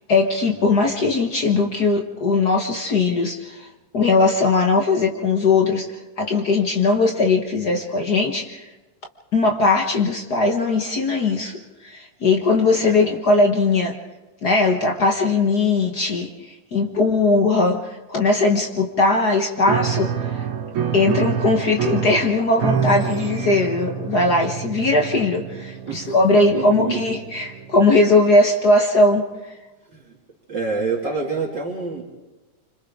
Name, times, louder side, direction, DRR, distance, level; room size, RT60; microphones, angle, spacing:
voice 1, 0.1-3.7 3.9-5.9 6.2-8.7 9.3-14.0 14.4-20.4 20.9-29.2, left 3 dB, 45° left, 2 dB, 1.3 m, -19 dB
Piano, 19.6-28.1, right 7 dB, 75° right, 3.3 m, -27 dB
voice 2, 25.9-27.0 29.9-30.1 30.5-32.0, right 4 dB, 40° right, -2 dB, 3.0 m, -27 dB
29.0 x 26.0 x 3.7 m, 1.1 s
omnidirectional pair, 3.4 m